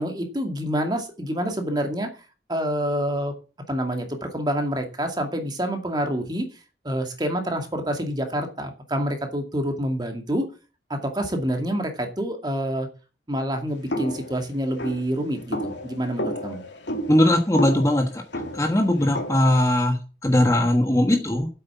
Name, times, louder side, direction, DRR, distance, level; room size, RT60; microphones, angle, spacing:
voice 1, 0.0-2.1 2.5-3.3 3.7-6.5 6.8-10.5 10.9-12.9 13.3-16.6, equal, 20° right, 4 dB, 2.2 m, -27 dB
sound 1, 13.9-19.7, equal, 75° left, 2.4 m, -32 dB
voice 2, 17.1-18.2 18.5-21.5, left 1 dB, 15° left, 3 dB, 1.4 m, -20 dB
9.5 x 8.3 x 7.1 m, 0.34 s
head